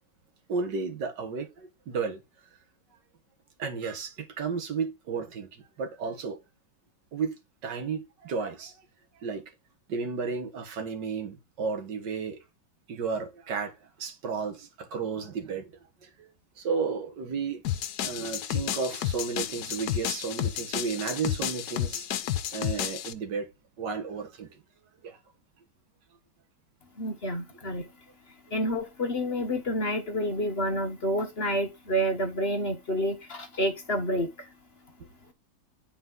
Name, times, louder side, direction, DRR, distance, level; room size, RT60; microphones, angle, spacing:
voice 1, 0.5-2.2 3.6-6.4 7.1-7.4 7.6-8.8 9.2-9.4 9.9-12.4 12.9-15.7 16.0-16.3 16.6-17.6 18.0-22.1 22.5-23.5 23.8-24.6 25.0-25.2, right 5 dB, 75° right, 2.0 m, -33 dB
sound 1, 17.6-23.1, left 11 dB, 70° left, 1.2 m, -31 dB
voice 2, 27.0-27.9 28.5-34.5, equal, 40° left, 1.0 m, -29 dB
10.0 x 4.1 x 3.8 m
omnidirectional pair, 1.9 m